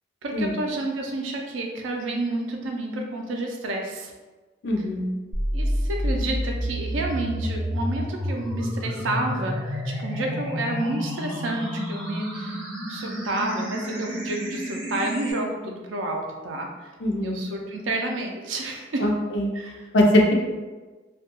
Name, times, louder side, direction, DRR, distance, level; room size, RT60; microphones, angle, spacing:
voice 1, 0.2-4.1 5.5-12.6 12.9-16.9 17.2-19.1 19.5-19.8, right 2 dB, 90° right, 1 dB, 0.4 m, -30 dB
voice 2, 4.6-5.1 17.0-17.4 19.0-19.5 19.9-20.3, left 1 dB, 65° left, 0 dB, 0.4 m, -21 dB
sound 1, 5.3-15.3, equal, 70° right, 1.1 m, -30 dB
2.3 x 2.2 x 2.9 m, 1.3 s
head